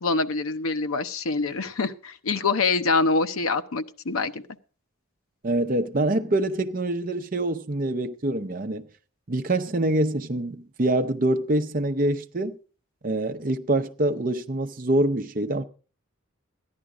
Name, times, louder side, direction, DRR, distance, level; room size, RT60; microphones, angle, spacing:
voice 1, 0.0-4.4, left 3 dB, 85° left, 0.7 m, -25 dB
voice 2, 5.4-8.9 9.3-12.6 13.0-15.6, right 1 dB, 40° right, 0.7 m, -25 dB
13.5 x 10.5 x 4.9 m
head